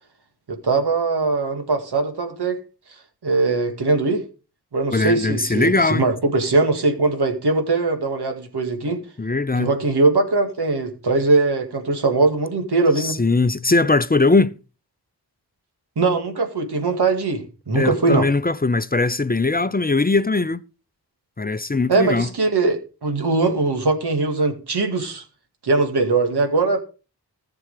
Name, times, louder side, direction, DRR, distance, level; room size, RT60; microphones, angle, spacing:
voice 1, 0.5-2.6 3.2-4.2 4.7-9.0 9.6-13.2 16.0-18.3 21.9-25.2 25.6-26.8, right 3 dB, 85° right, 2.3 m, -21 dB
voice 2, 4.9-6.1 9.2-9.7 13.0-14.5 17.7-20.6 21.4-22.3, left 3 dB, 25° left, 0.6 m, -20 dB
14.0 x 7.0 x 4.9 m
cardioid pair, 50°, 39 cm